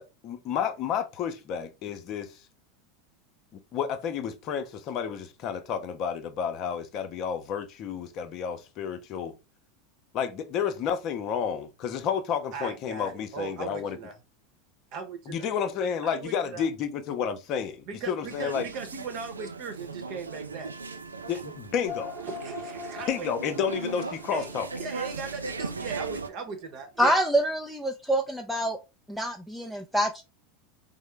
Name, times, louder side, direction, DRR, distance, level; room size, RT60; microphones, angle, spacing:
voice 1, 0.0-2.3 3.7-9.3 10.1-14.0 15.3-18.7 21.3-22.1 23.1-24.7, left 7 dB, 45° left, 0.6 m, -31 dB
voice 2, 12.5-14.1 14.9-15.5 16.0-16.7 17.9-20.7 22.2-23.3 24.3-24.5 24.8-27.2, right 5 dB, 50° right, 0.8 m, -38 dB
sound 1, 18.2-26.3, right 4 dB, 90° right, 0.3 m, -38 dB
sound 2, 21.9-26.6, left 4 dB, 20° right, 0.9 m, -43 dB
voice 3, 27.0-28.8 29.1-30.2, right 1 dB, ahead, 0.5 m, -26 dB
3.6 x 2.0 x 3.2 m
hypercardioid pair, 85°, 0 cm